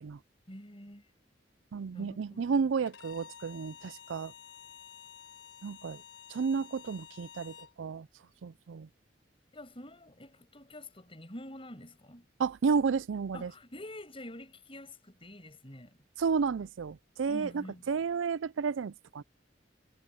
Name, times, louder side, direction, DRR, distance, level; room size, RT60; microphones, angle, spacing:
voice 1, 0.5-1.0 1.9-2.7 9.5-12.2 13.3-16.0 17.3-17.8, left 1 dB, 30° left, 7.8 m, -47 dB
voice 2, 1.7-4.3 5.6-6.0 6.3-8.1 8.4-8.9 12.4-13.5 16.2-19.2, right 5 dB, 90° right, 0.4 m, -32 dB
Bowed string instrument, 2.9-7.7, left 8 dB, 85° left, 4.0 m, -51 dB
head